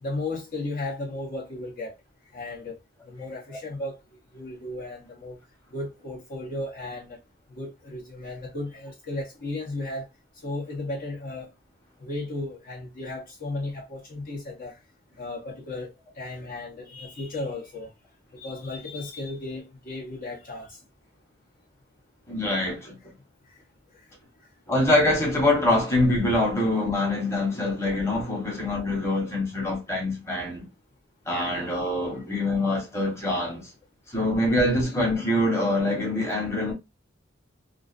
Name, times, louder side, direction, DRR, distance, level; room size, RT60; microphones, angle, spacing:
voice 1, 0.0-2.0 2.3-2.8 3.0-5.4 5.7-7.2 7.5-10.1 10.4-11.5 12.0-14.8 15.2-17.9 18.3-20.8 23.5-23.6, left 2 dB, 45° left, 0.7 m, -35 dB
voice 2, 22.3-22.9 24.7-30.6 31.3-33.7 34.1-36.7, left 1 dB, 15° left, 1.0 m, -24 dB
2.4 x 2.4 x 2.4 m
head